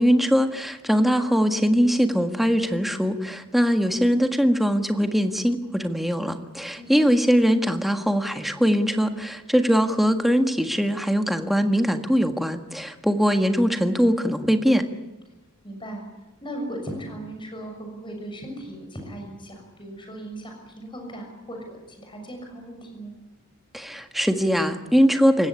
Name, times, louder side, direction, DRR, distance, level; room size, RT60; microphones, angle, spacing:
voice 1, 0.0-14.9 23.7-25.5, equal, ahead, 5 dB, 1.6 m, -21 dB
voice 2, 6.8-7.1 15.6-16.0 16.4-23.1, right 1 dB, 25° left, 3 dB, 6.5 m, -37 dB
28.0 x 16.0 x 9.8 m, 1.1 s
head